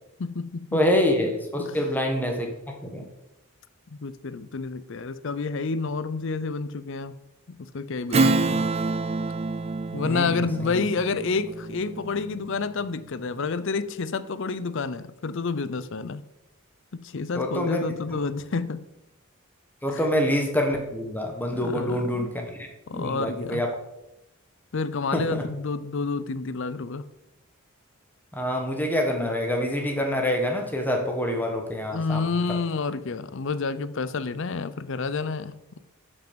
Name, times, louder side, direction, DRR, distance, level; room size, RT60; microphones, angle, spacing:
voice 1, 0.2-0.8 1.6-1.8 3.9-7.2 7.5-8.6 9.9-16.2 16.9-18.8 19.9-20.1 21.5-22.3 22.9-23.6 24.7-27.1 31.9-35.5, left 4 dB, 60° left, 15 dB, 0.6 m, -29 dB
voice 2, 0.7-3.0 10.0-10.8 17.3-17.8 19.8-22.7 22.9-23.7 25.1-25.4 28.3-32.2, left 1 dB, 10° left, 2 dB, 1.2 m, -26 dB
Strum, 8.1-13.0, right 3 dB, 30° right, 0.4 m, -27 dB
12.0 x 5.5 x 5.2 m, 0.93 s
head